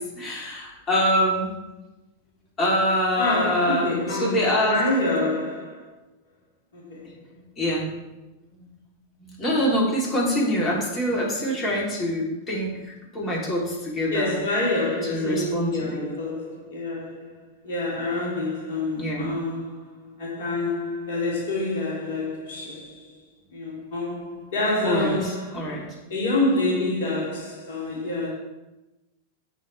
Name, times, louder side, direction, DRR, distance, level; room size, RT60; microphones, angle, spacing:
voice 1, 0.0-1.6 2.6-3.9 4.2-4.7 7.6-7.9 9.3-14.4 15.1-16.0 19.0-19.3 24.8-25.1 25.5-25.8, equal, 25° left, 3.9 m, -25 dB
voice 2, 3.1-5.9 6.7-7.2 14.1-23.2 23.5-28.3, left 2 dB, 55° left, 3.1 m, -27 dB
12.5 x 8.3 x 3.6 m
figure-of-eight pair, 90°, 0 cm